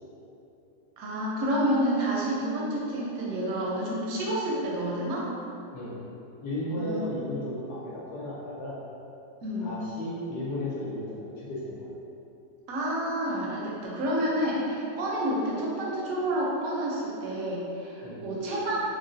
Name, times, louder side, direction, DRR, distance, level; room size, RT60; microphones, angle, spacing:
voice 1, 1.0-5.3 6.8-7.0 9.4-9.7 12.7-18.8, right 1 dB, 70° right, -4 dB, 0.9 m, -29 dB
voice 2, 6.4-8.8 9.6-11.9 18.0-18.2, left 1 dB, 70° left, -8 dB, 1.1 m, -34 dB
3.8 x 2.1 x 2.5 m, 2.8 s
omnidirectional pair, 1.8 m